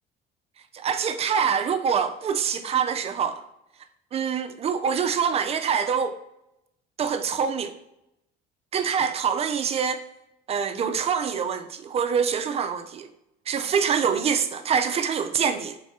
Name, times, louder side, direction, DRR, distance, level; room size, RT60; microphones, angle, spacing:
voice 1, 0.7-3.4 4.1-6.2 7.0-7.7 8.7-10.0 10.5-13.1 13.5-15.8, right 7 dB, 30° right, 0.4 m, -25 dB
3.2 x 3.2 x 2.8 m
supercardioid pair, 75°, 21 cm